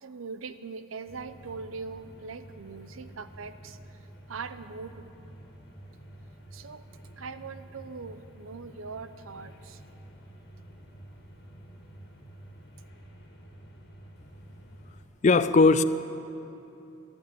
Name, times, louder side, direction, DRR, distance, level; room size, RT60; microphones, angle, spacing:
voice 1, 0.0-4.0 4.3-5.1 6.5-6.8 7.2-9.8, right 4 dB, 90° right, 12 dB, 0.6 m, -41 dB
sound 1, 1.1-15.0, right 1 dB, 55° left, 1.8 m, -49 dB
voice 2, 15.2-15.8, left 3 dB, 35° left, 13 dB, 0.4 m, -18 dB
11.5 x 11.5 x 9.5 m, 3.0 s
head